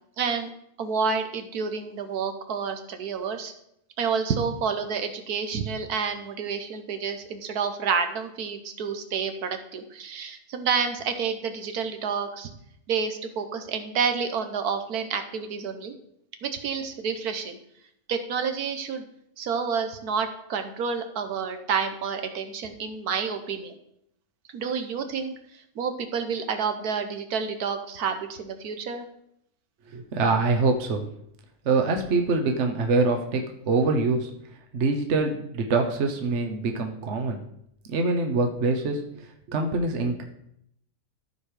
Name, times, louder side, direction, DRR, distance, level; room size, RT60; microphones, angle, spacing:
voice 1, 0.2-0.5 0.8-3.5 4.0-12.5 12.9-15.9 16.4-17.6 18.1-19.1 19.4-23.8 24.5-29.1, right 6 dB, 90° right, 7 dB, 1.5 m, -29 dB
voice 2, 29.9-31.1 31.6-34.3 34.7-37.4 37.9-40.2, right 3 dB, 55° right, 3 dB, 1.2 m, -24 dB
13.5 x 4.7 x 4.9 m, 0.75 s
omnidirectional pair, 1.6 m